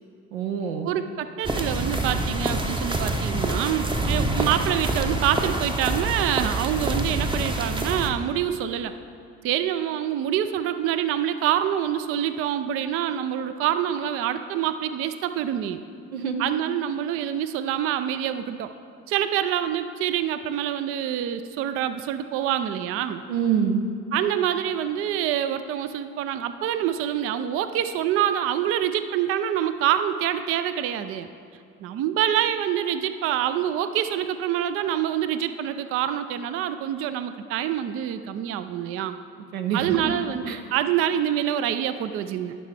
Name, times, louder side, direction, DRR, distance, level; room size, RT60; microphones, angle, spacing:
voice 1, 0.3-0.9 16.1-16.5 23.3-23.8 39.5-40.1 40.5-40.6, right 7 dB, 80° right, 5 dB, 0.8 m, -26 dB
voice 2, 0.8-8.9 9.4-15.8 16.4-18.7 19.1-23.2 24.1-31.3 31.8-39.2 39.7-42.5, right 10 dB, 35° right, 11 dB, 0.4 m, -26 dB
sound 1, 1.4-8.1, right 2 dB, 10° right, 0.7 m, -26 dB
14.5 x 5.6 x 3.3 m, 2.4 s
figure-of-eight pair, 60°, 42 cm